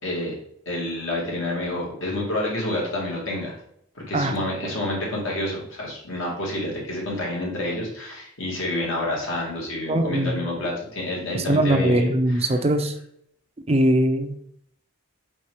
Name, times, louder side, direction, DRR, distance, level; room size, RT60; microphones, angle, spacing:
voice 1, 0.0-0.3 0.7-3.6 4.0-12.6, left 1 dB, 65° left, -3 dB, 2.1 m, -28 dB
voice 2, 9.9-10.4 11.3-12.9 13.7-14.4, right 1 dB, 30° right, 6 dB, 0.5 m, -21 dB
4.4 x 4.4 x 4.9 m, 0.71 s
head